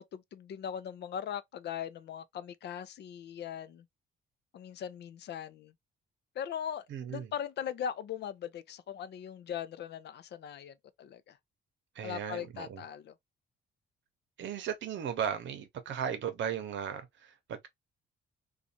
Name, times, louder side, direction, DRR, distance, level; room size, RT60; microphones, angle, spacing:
voice 1, 0.0-3.9 4.5-5.7 6.4-11.4 12.0-13.1, left 9 dB, 60° left, 0.5 m, -40 dB
voice 2, 6.9-7.3 11.9-12.8 14.4-17.7, right 8 dB, 70° right, 0.8 m, -36 dB
2.5 x 2.3 x 2.7 m
cardioid pair, 90°, 20 cm